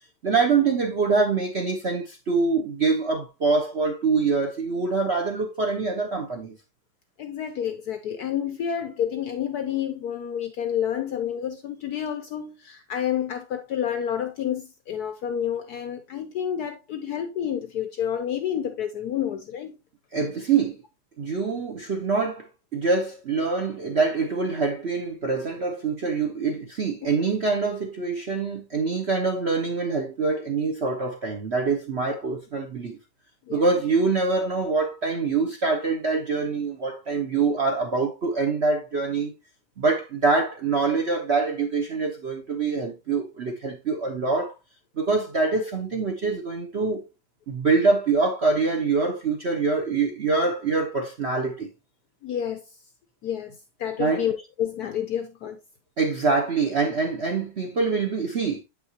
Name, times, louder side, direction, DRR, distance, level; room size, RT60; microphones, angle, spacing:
voice 1, 0.2-6.6 20.1-20.8 21.2-22.5 22.7-33.0 33.5-39.3 39.8-44.5 45.0-47.0 47.5-51.7 54.0-54.3 56.0-58.6, right 4 dB, 50° right, 0.8 m, -25 dB
voice 2, 7.2-19.7 33.5-33.6 52.2-52.6 53.2-53.5 53.8-55.6, left 9 dB, 70° left, 1.0 m, -29 dB
7.7 x 5.8 x 2.8 m
omnidirectional pair, 2.2 m